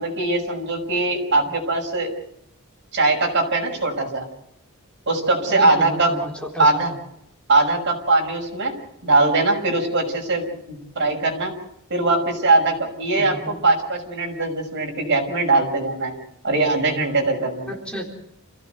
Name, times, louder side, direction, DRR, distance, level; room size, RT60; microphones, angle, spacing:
voice 1, 0.0-2.1 2.9-4.3 5.1-6.1 6.6-6.9 7.5-8.7 9.0-11.5 11.9-16.1 16.4-17.7, right 2 dB, 55° right, 2 dB, 6.1 m, -21 dB
voice 2, 5.5-7.0 13.2-13.6 17.7-18.1, right 1 dB, 5° left, -1 dB, 3.8 m, -32 dB
28.5 x 16.0 x 8.1 m, 0.78 s
head